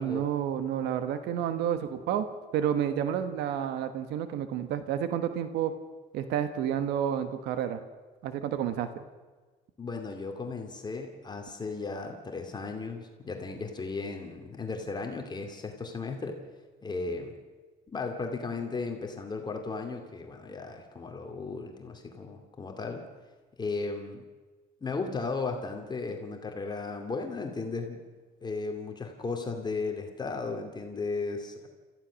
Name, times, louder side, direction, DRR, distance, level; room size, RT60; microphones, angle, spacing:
voice 1, 0.0-2.3 2.5-5.7 6.1-7.8 8.2-9.0, right 9 dB, 85° right, 10 dB, 1.4 m, -30 dB
voice 2, 9.8-16.4 16.8-17.3 17.9-23.0 23.6-24.2 24.8-28.0 28.4-31.7, left 4 dB, 25° left, 3 dB, 2.5 m, -35 dB
30.0 x 15.0 x 6.4 m, 1.3 s
cardioid pair, 110°, 17 cm